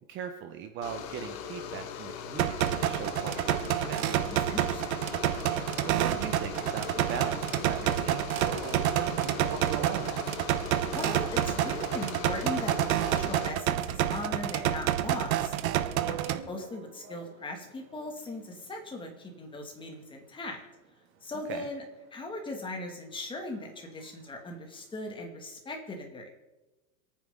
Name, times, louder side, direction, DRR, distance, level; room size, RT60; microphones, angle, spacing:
voice 1, 0.1-4.2 5.8-10.2 16.0-16.4 21.5-21.7, right 7 dB, 25° right, 6 dB, 1.0 m, -39 dB
sound 1, 0.8-13.5, left 8 dB, 45° left, 1.7 m, -40 dB
sound 2, 2.4-16.4, right 11 dB, 70° right, 1.2 m, -29 dB
voice 2, 4.5-5.1 10.9-12.7 13.0-20.6 21.2-21.8 22.1-26.3, left 2 dB, 10° left, 2 dB, 2.3 m, -39 dB
sound 3, 8.3-24.9, right 7 dB, 50° right, 2.6 m, -51 dB
27.5 x 9.4 x 3.9 m, 1.1 s
supercardioid pair, 155°, 43 cm